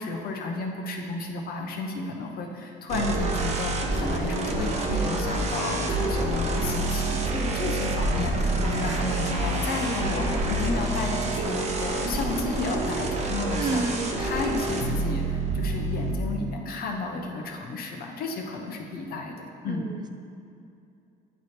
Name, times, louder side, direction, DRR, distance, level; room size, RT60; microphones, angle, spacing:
voice 1, 0.0-13.9 14.2-19.9, left 3 dB, 60° left, 1 dB, 0.8 m, -32 dB
sound 1, 2.9-16.1, right 2 dB, 40° right, 0.8 m, -27 dB
voice 2, 13.5-14.1 19.7-20.1, right 3 dB, 25° right, 7 dB, 0.4 m, -29 dB
9.2 x 3.3 x 4.3 m, 2.6 s
cardioid pair, 110°, 17 cm